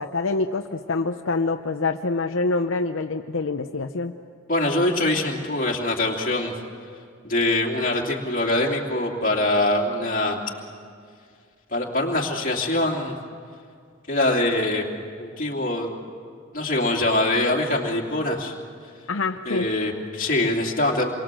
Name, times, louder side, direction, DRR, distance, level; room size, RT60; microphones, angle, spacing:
voice 1, 0.0-4.1 19.1-19.7, left 3 dB, 75° left, 5 dB, 0.7 m, -26 dB
voice 2, 4.5-6.5 7.2-10.4 11.7-13.1 14.1-14.8 15.2-15.9 16.5-18.5 19.5-21.1, left 1 dB, 45° left, -1 dB, 2.8 m, -23 dB
28.0 x 23.0 x 7.6 m, 2.2 s
head